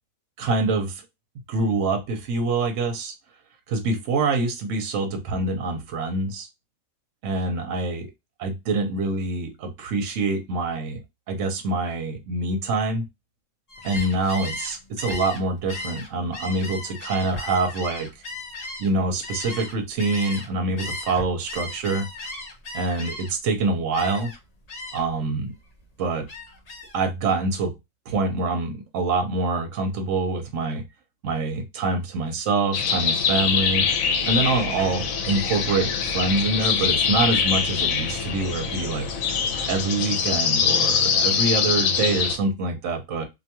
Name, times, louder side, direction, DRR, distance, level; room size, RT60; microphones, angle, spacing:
voice 1, 0.4-1.0 1.5-3.1 3.7-6.5 7.2-8.1 8.4-11.0 11.3-13.0 13.8-18.1 18.8-22.1 22.7-24.3 24.9-25.5 26.0-26.3 26.9-27.7 28.1-30.8 31.2-33.9 34.3-39.1 39.7-43.2, right 3 dB, 75° right, 1.0 m, -25 dB
Gull seagull, 13.7-20.5 20.8-23.5 23.9-24.4 24.7-25.2 25.5-27.0, left 2 dB, 45° left, 0.5 m, -36 dB
sound 1, 32.7-42.4, left 6 dB, 90° left, 1.0 m, -24 dB
sound 2, 33.5-39.9, right 1 dB, 50° right, 0.3 m, -39 dB
2.6 x 2.2 x 2.8 m
omnidirectional pair, 1.4 m